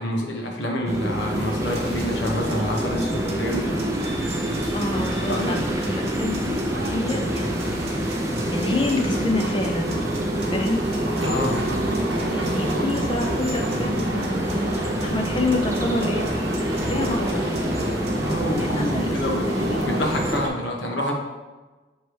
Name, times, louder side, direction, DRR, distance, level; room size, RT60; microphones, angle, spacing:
voice 1, 0.0-3.8 5.3-5.6 11.2-11.6 18.2-21.1, left 1 dB, 80° left, 1 dB, 1.0 m, -27 dB
sound 1, 0.9-20.4, right 1 dB, 15° right, 0.5 m, -27 dB
sound 2, 1.2-20.5, right 1 dB, 70° right, 0.9 m, -31 dB
sound 3, 1.6-18.6, right 3 dB, 35° right, 1.0 m, -43 dB
voice 2, 4.7-6.6 6.8-7.8 8.5-10.0 10.5-10.9 12.3-16.2 16.9-17.5 18.6-20.0, left 2 dB, 25° left, 3 dB, 0.6 m, -28 dB
6.7 x 3.1 x 4.6 m, 1.2 s
head